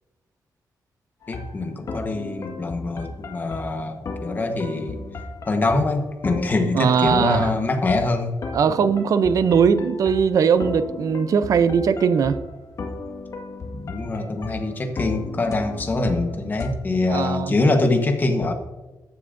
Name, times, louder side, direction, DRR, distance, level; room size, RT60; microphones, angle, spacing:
sound 1, 1.2-16.7, left 3 dB, 50° left, 1.7 m, -35 dB
voice 1, 1.3-5.0 5.4-8.3 8.7-8.8 13.7-18.5, left 2 dB, 25° left, 5 dB, 1.2 m, -24 dB
voice 2, 6.7-7.5 8.5-12.4 17.1-17.5, right 6 dB, 55° right, 12 dB, 0.5 m, -19 dB
14.0 x 9.9 x 2.6 m, 1.2 s
wide cardioid pair, 170°, 7 cm